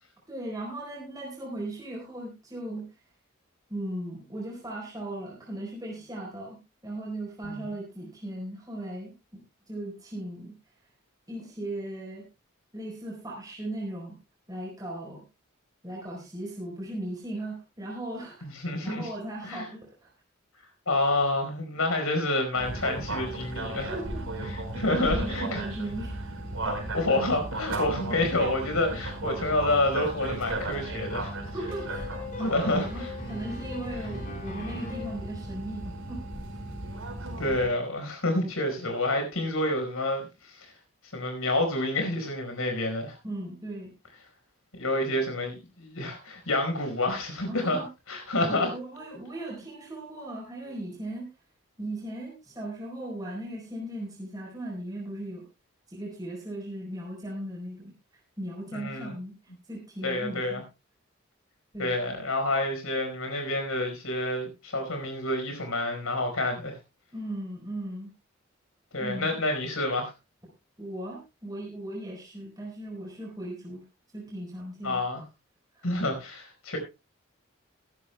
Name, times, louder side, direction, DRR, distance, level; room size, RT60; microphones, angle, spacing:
voice 1, 0.3-2.9 3.7-9.4 9.7-10.5 11.3-12.2 12.7-14.1 14.5-15.2 15.8-18.5 18.8-20.1 23.9-24.5 24.8-26.1 31.5-32.1 32.4-33.0 33.3-36.2 43.2-43.9 47.5-47.8 48.4-51.3 51.8-55.4 55.9-57.9 58.4-59.3 59.7-60.6 61.7-61.9 67.1-68.1 69.0-69.4 70.8-73.8 74.1-75.0 75.7-75.9, right 1 dB, 15° right, -2 dB, 4.1 m, -37 dB
voice 2, 18.4-19.1 19.4-19.7 20.9-23.9 24.5-25.6 26.6-31.3 32.4-33.1 37.4-40.7 41.1-43.1 44.7-47.8 48.1-48.7 58.7-59.1 60.0-60.6 61.8-66.8 68.9-70.1 74.8-75.2 75.8-76.8, left 2 dB, 90° left, 5 dB, 4.8 m, -28 dB
sound 1, 22.5-37.7, right 2 dB, 75° right, 4.9 m, -35 dB
sound 2, 31.7-35.3, left 4 dB, 35° left, 4.0 m, -40 dB
22.0 x 11.5 x 2.3 m, 0.27 s
head